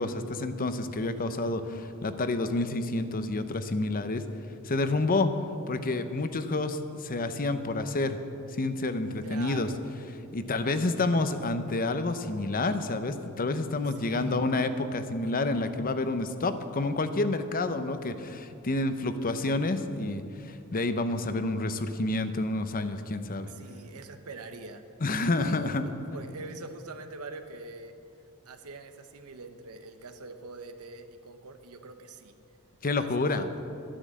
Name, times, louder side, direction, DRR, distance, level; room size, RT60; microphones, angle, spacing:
voice 1, 0.0-4.2 4.6-5.3 5.7-8.2 8.6-9.7 10.3-23.5 25.0-25.9 32.8-33.5, left 2 dB, 40° left, 10 dB, 0.7 m, -29 dB
voice 2, 9.2-9.8 13.9-14.3 15.5-15.8 23.5-24.8 25.3-28.0 28.4-32.3 33.0-33.4, right 3 dB, 90° right, 8 dB, 1.0 m, -44 dB
12.5 x 10.0 x 7.5 m, 2.6 s
head